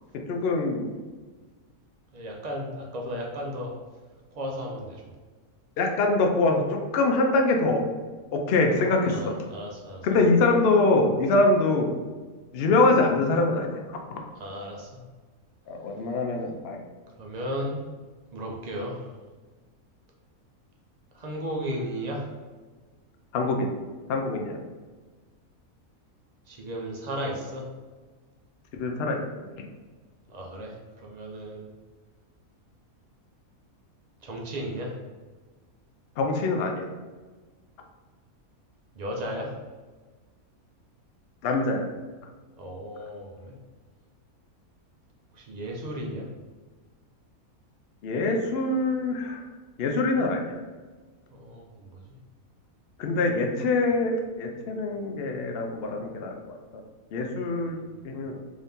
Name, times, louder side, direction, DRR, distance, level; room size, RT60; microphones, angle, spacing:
voice 1, 0.3-0.9 5.8-7.8 8.3-9.3 10.0-11.9 12.5-13.8 15.7-16.8 23.3-23.7 24.1-24.6 28.7-29.2 36.2-36.9 41.4-41.9 48.0-49.4 49.8-50.6 53.0-56.6 57.1-57.8 58.0-58.4, left 2 dB, 60° left, 2 dB, 0.6 m, -24 dB
voice 2, 2.1-3.7 4.3-5.0 9.1-10.2 10.5-10.6 14.4-15.0 17.2-17.8 18.3-19.1 21.1-22.3 26.5-27.6 30.3-31.7 34.2-35.0 38.9-39.6 42.6-43.5 45.3-46.3 51.3-52.0 57.6-58.1, equal, 55° right, -1 dB, 0.4 m, -35 dB
3.6 x 2.7 x 3.5 m, 1.3 s
omnidirectional pair, 1.5 m